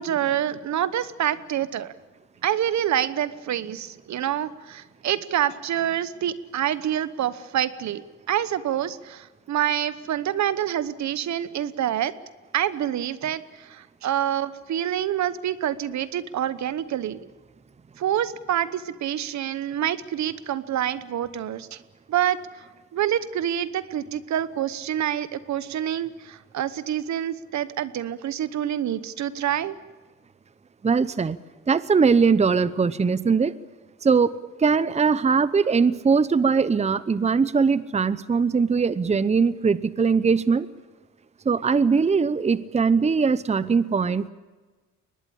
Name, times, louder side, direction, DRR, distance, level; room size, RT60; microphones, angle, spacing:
voice 1, 0.0-1.9 2.4-12.1 12.5-17.2 18.0-21.8 22.1-22.4 22.9-29.8, right 11 dB, 65° right, 15 dB, 1.1 m, -27 dB
voice 2, 30.8-31.4 31.7-33.5 34.0-40.7 41.4-44.3, right 5 dB, 20° right, 16 dB, 0.8 m, -21 dB
23.0 x 19.5 x 8.7 m, 1.3 s
cardioid pair, 90°, 30 cm